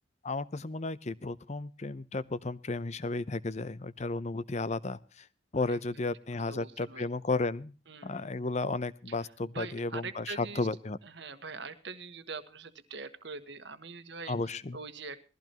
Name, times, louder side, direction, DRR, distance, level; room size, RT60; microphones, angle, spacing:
voice 1, 0.2-5.3 5.5-7.7 8.0-11.0 14.3-14.8, left 3 dB, 35° left, 18 dB, 0.6 m, -33 dB
voice 2, 5.7-6.1 6.5-7.0 7.9-8.5 9.1-10.7 11.0-15.2, right 4 dB, 60° right, 11 dB, 1.4 m, -44 dB
20.0 x 15.0 x 3.0 m, 0.34 s
head